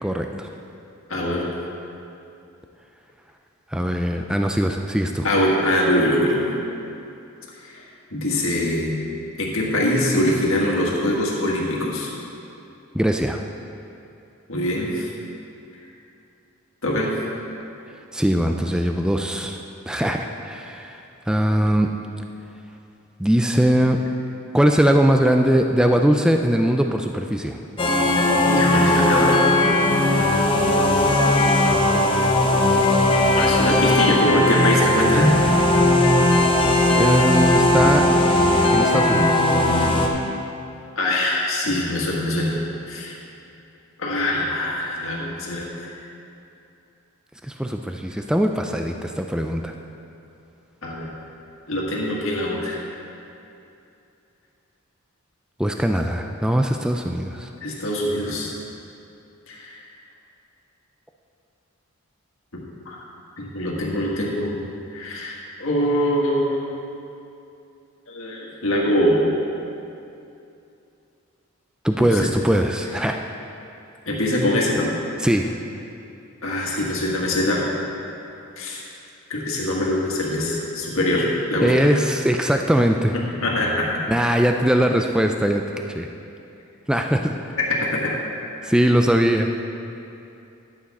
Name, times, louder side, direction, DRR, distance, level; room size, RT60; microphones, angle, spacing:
voice 1, 0.0-0.5 3.7-5.3 12.9-13.4 18.1-19.6 19.9-21.9 23.2-24.0 24.5-27.6 37.0-38.0 38.7-39.5 47.4-49.7 55.6-57.5 71.8-73.2 75.2-75.5 81.6-83.2 84.1-85.6 85.9-86.1 86.9-87.4 88.6-89.6, equal, 5° right, 4 dB, 0.3 m, -21 dB
voice 2, 1.1-1.5 5.2-6.4 7.6-7.7 8.1-9.0 9.4-12.1 14.5-15.1 16.8-17.1 28.5-29.4 30.0-30.3 33.4-35.3 41.0-43.1 44.0-45.9 50.8-51.1 51.7-52.8 57.6-58.5 59.5-59.8 62.5-63.0 63.4-64.6 64.9-67.0 68.1-69.2 72.0-72.3 74.1-74.9 76.4-77.6 78.6-78.8 79.3-82.0 83.4-83.9 87.6-88.1, left 1 dB, 65° left, -3 dB, 1.8 m, -23 dB
sound 1, 27.8-40.1, left 1 dB, 25° left, 0.8 m, -18 dB
11.5 x 8.4 x 4.2 m, 2.7 s
head